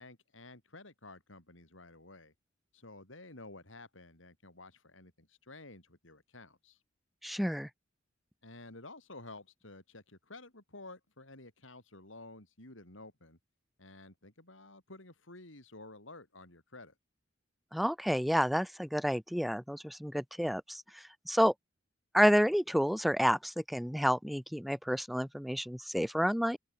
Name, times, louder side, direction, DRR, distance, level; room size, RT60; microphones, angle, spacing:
voice 1, 0.0-2.3 2.7-6.8 8.4-13.4 13.8-16.9, left 2 dB, 85° left, 6.2 m, -52 dB
voice 2, 7.2-7.7 17.7-21.5 22.1-26.6, equal, ahead, 2.5 m, -30 dB
open air
head